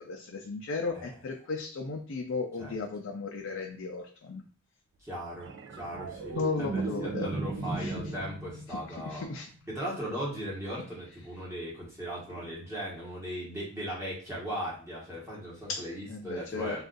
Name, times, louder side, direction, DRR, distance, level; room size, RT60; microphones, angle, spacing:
voice 1, 0.0-4.4 6.3-7.3 7.7-8.0 8.7-9.5 15.7-16.8, left 4 dB, 65° left, 2 dB, 0.4 m, -35 dB
voice 2, 5.0-9.3 9.7-16.8, equal, 15° right, -5 dB, 1.1 m, -38 dB
sound 1, 5.4-9.9 12.3-12.5, right 4 dB, 55° right, 0.4 m, -37 dB
2.5 x 2.4 x 3.8 m, 0.43 s
head